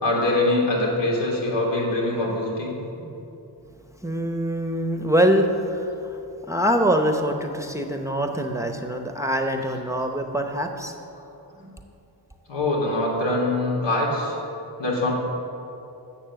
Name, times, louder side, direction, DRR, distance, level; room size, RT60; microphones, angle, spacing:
voice 1, 0.0-2.7 11.6-11.7 12.5-14.3 14.8-15.1, left 2 dB, 90° left, -3 dB, 3.1 m, -23 dB
voice 2, 4.0-11.0, equal, 5° right, 4 dB, 0.7 m, -24 dB
12.0 x 7.4 x 7.5 m, 2.8 s
wide cardioid pair, 140°, 42 cm